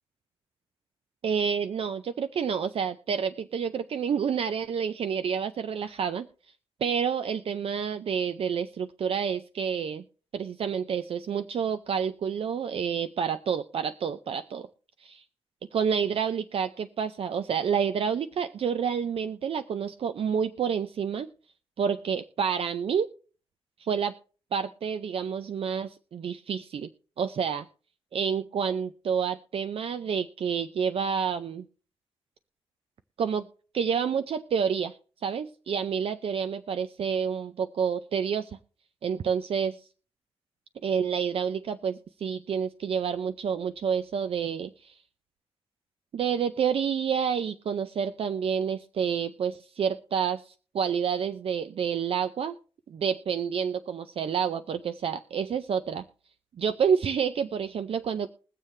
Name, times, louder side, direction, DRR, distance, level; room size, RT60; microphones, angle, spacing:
voice 1, 1.2-6.3 6.8-10.0 10.3-14.7 15.0-15.2 15.7-21.3 21.8-23.1 23.8-24.1 24.5-26.9 27.2-27.6 28.1-31.7 33.2-33.5 33.7-34.9 35.2-38.5 39.0-39.8 40.8-45.0 46.1-52.5 52.9-56.0 56.6-58.3, right 7 dB, 70° right, 11 dB, 0.5 m, -29 dB
21.5 x 7.4 x 3.2 m, 0.39 s
wide cardioid pair, 130°, 10 cm